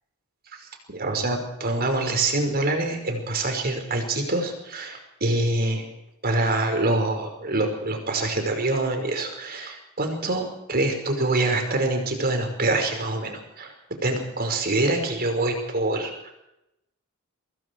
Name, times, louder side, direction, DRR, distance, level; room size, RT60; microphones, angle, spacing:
voice 1, 0.5-5.9 6.2-13.7 14.0-16.3, right 2 dB, 45° right, 5 dB, 5.3 m, -25 dB
25.0 x 22.0 x 4.8 m, 0.86 s
head